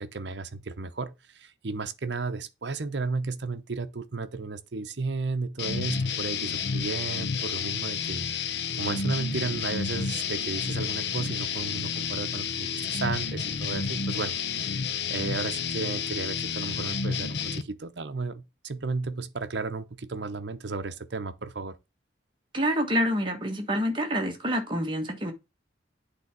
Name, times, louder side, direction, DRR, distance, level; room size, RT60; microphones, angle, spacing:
voice 1, 0.0-21.8, right 4 dB, 65° right, 0.8 m, -34 dB
sound 1, 5.6-17.6, left 6 dB, 60° left, 0.7 m, -30 dB
voice 2, 22.5-25.3, equal, 25° right, 1.5 m, -27 dB
8.2 x 3.5 x 6.0 m
head